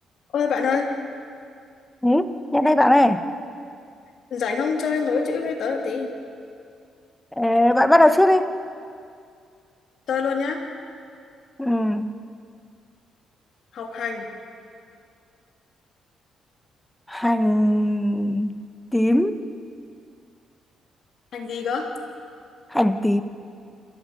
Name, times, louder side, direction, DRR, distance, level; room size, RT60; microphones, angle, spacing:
voice 1, 0.3-0.9 4.3-6.1 10.1-10.6 13.7-14.2 21.3-21.9, left 5 dB, 65° left, 2 dB, 2.9 m, -25 dB
voice 2, 2.0-3.3 7.4-8.5 11.6-12.1 17.1-18.6 18.9-19.4 22.7-23.2, left 1 dB, 10° left, 10 dB, 1.1 m, -19 dB
28.0 x 13.5 x 7.8 m, 2.3 s
cardioid pair, 90°, 0 cm